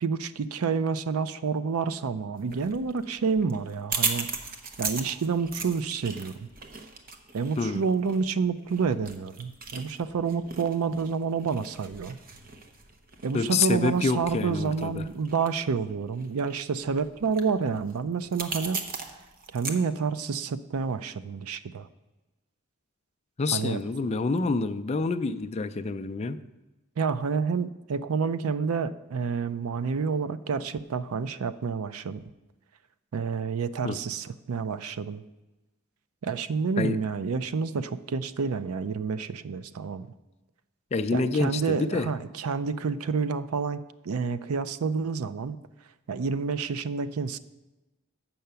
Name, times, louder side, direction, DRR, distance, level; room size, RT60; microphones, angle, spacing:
voice 1, 0.0-4.3 4.8-6.5 7.3-12.2 13.2-18.8 19.5-21.9 23.5-23.8 27.0-32.3 33.1-35.2 36.2-40.1 41.1-45.6 46.1-47.4, right 5 dB, 80° right, 14 dB, 0.5 m, -29 dB
sound 1, 2.4-19.7, right 4 dB, 40° right, 0.8 m, -38 dB
voice 2, 13.3-15.1 23.4-26.4 33.8-34.0 36.8-37.0 40.9-42.1, left 4 dB, 30° left, 10 dB, 0.3 m, -27 dB
7.7 x 5.7 x 6.8 m, 1.1 s
head